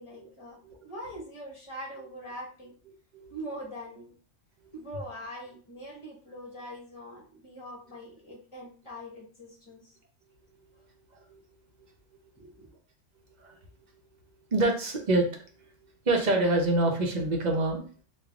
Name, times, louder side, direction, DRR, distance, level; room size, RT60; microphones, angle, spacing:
voice 1, 0.0-0.6 0.8-2.7 3.3-4.1 4.7-9.9 12.4-12.7, equal, 25° left, -3 dB, 1.3 m, -42 dB
voice 2, 14.5-15.3 16.1-17.8, right 2 dB, 40° right, 2 dB, 0.8 m, -26 dB
3.7 x 2.5 x 3.5 m, 0.41 s
omnidirectional pair, 1.3 m